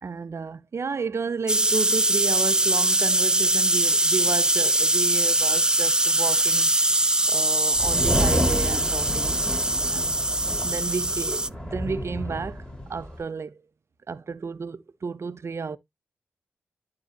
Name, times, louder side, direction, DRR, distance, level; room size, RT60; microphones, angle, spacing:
voice 1, 0.0-6.7 7.3-9.5 9.9-10.2 10.6-12.6 12.9-13.6 14.1-15.8, right 5 dB, 55° right, 0.8 m, -32 dB
sound 1, 1.5-11.5, right 1 dB, 15° right, 0.4 m, -22 dB
sound 2, 7.8-13.2, equal, 15° left, 3.3 m, -30 dB
11.5 x 3.8 x 3.9 m
supercardioid pair, 40°, 6 cm